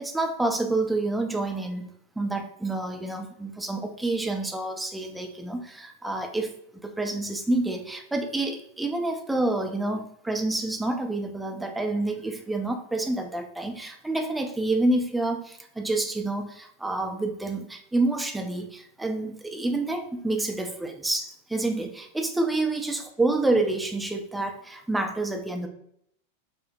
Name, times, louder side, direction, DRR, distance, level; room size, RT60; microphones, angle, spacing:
voice 1, 0.0-1.9 2.2-6.5 6.8-25.7, right 2 dB, 5° right, 3 dB, 0.5 m, -28 dB
4.6 x 2.1 x 2.5 m, 0.70 s
figure-of-eight pair, 90°, 0 cm